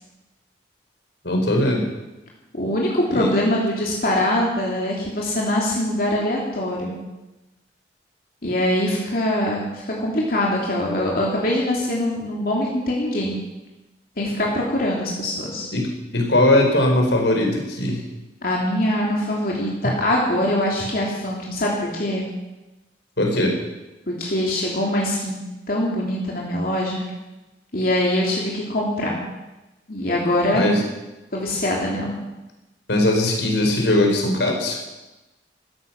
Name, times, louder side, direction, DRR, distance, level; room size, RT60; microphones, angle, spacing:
voice 1, 1.2-1.9 3.1-3.3 15.7-18.0 19.8-19.9 23.2-23.5 30.5-30.8 32.9-34.8, left 1 dB, 85° left, 1 dB, 4.4 m, -20 dB
voice 2, 2.5-7.0 8.4-13.4 14.2-15.7 18.4-22.3 24.1-25.4 25.7-27.0 27.7-29.2 29.9-30.7 31.3-32.2, left 1 dB, 55° left, -3 dB, 3.0 m, -23 dB
15.5 x 14.5 x 6.0 m, 1.0 s
head